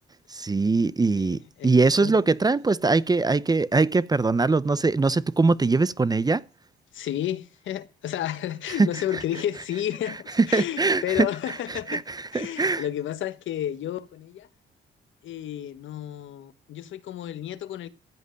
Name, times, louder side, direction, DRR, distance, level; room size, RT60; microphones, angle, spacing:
voice 1, 0.3-6.4 8.8-8.9 10.5-11.3 11.9-12.8, right 3 dB, 20° right, 0.7 m, -22 dB
voice 2, 1.2-2.2 6.9-12.0 12.3-14.5 15.2-17.9, left 11 dB, 75° left, 1.3 m, -32 dB
15.0 x 8.2 x 6.4 m
cardioid pair, 90°, 20 cm